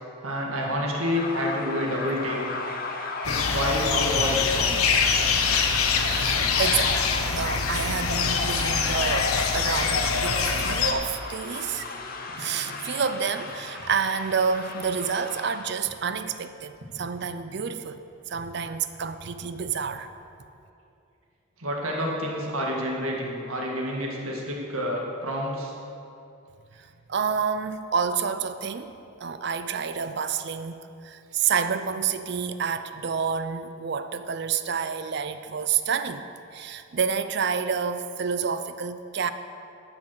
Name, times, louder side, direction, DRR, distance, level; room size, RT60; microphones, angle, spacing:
voice 1, 0.2-2.6 3.2-4.8 17.5-17.6 21.6-25.7, equal, 80° right, -1 dB, 1.9 m, -28 dB
sound 1, 0.9-15.8, left 3 dB, 40° left, 0.8 m, -36 dB
sound 2, 3.2-10.9, left 5 dB, 90° left, 0.9 m, -24 dB
voice 2, 6.1-11.9 12.4-18.0 18.3-20.1 27.1-28.9 29.2-39.3, right 6 dB, 50° right, 11 dB, 0.5 m, -29 dB
13.0 x 6.1 x 6.4 m, 2.7 s
head